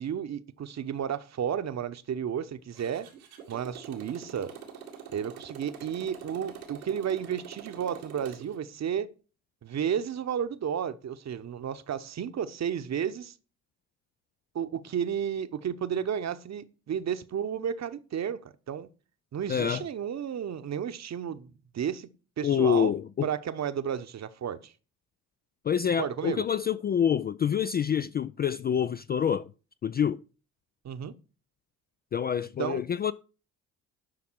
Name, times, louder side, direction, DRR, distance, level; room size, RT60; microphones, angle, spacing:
voice 1, 0.0-3.1 3.5-4.5 5.1-9.1 9.6-13.3 14.5-18.9 19.3-22.1 22.4-22.9 23.2-24.7 26.0-26.4 30.8-31.1 32.6-32.8, right 8 dB, 40° right, 1.0 m, -32 dB
Motorcycle, 2.7-8.6, right 7 dB, 85° right, 2.0 m, -45 dB
voice 2, 19.5-19.8 22.4-23.3 25.6-29.5 29.8-30.2 32.1-33.1, left 8 dB, 25° left, 0.4 m, -27 dB
11.5 x 5.8 x 4.6 m
hypercardioid pair, 55°, 43 cm